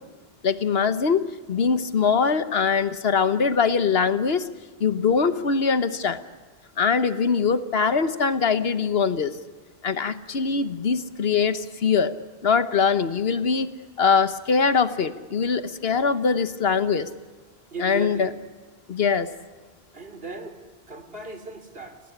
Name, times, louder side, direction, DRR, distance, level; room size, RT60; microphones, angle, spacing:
voice 1, 0.4-1.2 1.5-4.5 4.8-6.2 6.8-9.3 9.8-12.1 12.4-13.7 14.0-17.1 17.8-18.3 18.9-19.3, left 5 dB, 70° left, 11 dB, 1.4 m, -22 dB
voice 2, 17.7-18.3 19.9-20.6 20.9-22.0, right 3 dB, 65° right, 7 dB, 3.1 m, -36 dB
29.0 x 18.5 x 10.0 m, 1.3 s
omnidirectional pair, 1.0 m